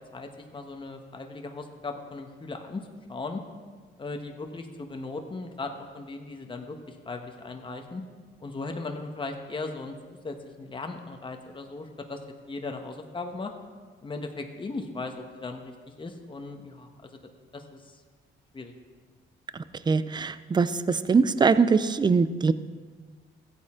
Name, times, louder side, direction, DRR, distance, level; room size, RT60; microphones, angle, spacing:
voice 1, 0.0-2.8 3.1-3.4 4.0-8.0 8.4-12.2 12.5-13.5 14.0-17.2 17.5-17.8 18.5-18.7, left 3 dB, 25° left, 4 dB, 1.2 m, -37 dB
voice 2, 19.9-20.7 21.1-22.5, right 5 dB, 20° right, 14 dB, 0.5 m, -22 dB
15.0 x 8.7 x 3.7 m, 1.5 s
cardioid pair, 90°, 20 cm